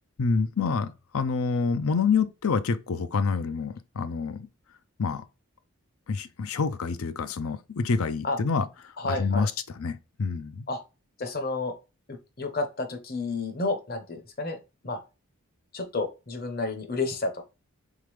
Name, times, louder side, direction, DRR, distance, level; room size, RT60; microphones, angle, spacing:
voice 1, 0.2-4.4 5.0-5.2 6.1-8.7 9.0-10.6, left 5 dB, 70° left, 0.5 m, -27 dB
voice 2, 9.0-9.5 10.7-10.8 11.2-11.7 12.1-14.6 14.8-15.0 15.7-17.4, left 3 dB, 40° left, 0.9 m, -31 dB
3.7 x 3.7 x 3.1 m
head